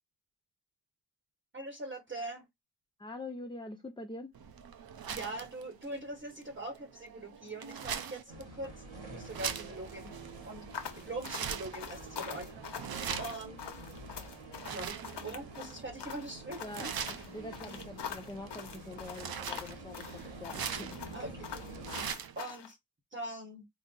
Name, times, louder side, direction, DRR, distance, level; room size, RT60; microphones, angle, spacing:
voice 1, 1.5-2.5 5.1-10.2 10.4-10.6 11.0-12.5 13.2-13.7 14.7-16.9 21.1-21.6 22.4-22.8 23.1-23.7, right 2 dB, 25° right, 0.9 m, -42 dB
voice 2, 3.0-4.3 16.6-21.0, left 2 dB, 10° left, 0.5 m, -45 dB
sound 1, 4.3-22.4, right 7 dB, 55° right, 0.6 m, -43 dB
sound 2, 8.3-22.1, right 2 dB, 85° right, 1.7 m, -48 dB
sound 3, 10.7-22.7, left 8 dB, 70° left, 0.9 m, -44 dB
3.9 x 2.0 x 3.7 m
wide cardioid pair, 85°, 44 cm